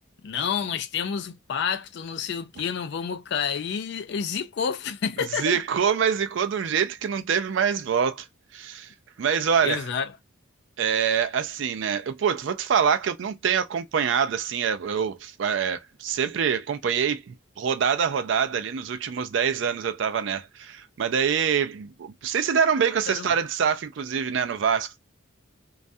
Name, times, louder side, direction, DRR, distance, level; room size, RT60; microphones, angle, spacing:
voice 1, 0.2-5.6 9.6-10.1 23.1-23.3, left 7 dB, 55° left, 0.3 m, -29 dB
voice 2, 5.4-8.3 8.5-8.9 9.2-9.8 10.8-25.0, right 7 dB, 60° right, 0.3 m, -25 dB
2.3 x 2.1 x 2.6 m
head